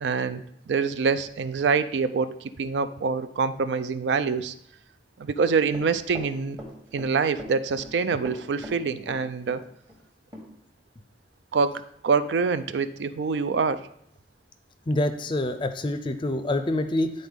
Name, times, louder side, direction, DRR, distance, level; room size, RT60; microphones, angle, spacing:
voice 1, 0.0-4.5 5.2-6.6 6.9-9.6 11.5-13.9, right 5 dB, 85° right, 12 dB, 0.4 m, -25 dB
Run, 5.7-7.1 7.4-7.9 8.2-9.6 9.9-10.0 10.3-10.4, equal, 25° right, 1.1 m, -40 dB
voice 2, 14.9-17.1, left 1 dB, 30° left, 9 dB, 0.4 m, -26 dB
9.7 x 4.0 x 3.5 m, 0.71 s
head